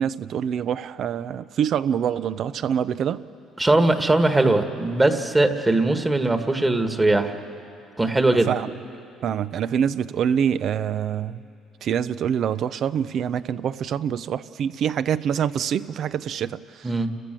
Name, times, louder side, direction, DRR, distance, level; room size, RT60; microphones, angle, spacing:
voice 1, 0.0-3.2 8.5-8.7 9.2-11.4 11.8-16.9, right 8 dB, 60° right, 14 dB, 0.6 m, -25 dB
voice 2, 3.6-7.3 8.0-8.5 16.8-17.1, right 2 dB, 15° right, 7 dB, 1.6 m, -20 dB
29.5 x 14.5 x 7.6 m, 2.8 s
supercardioid pair, 85°, 0 cm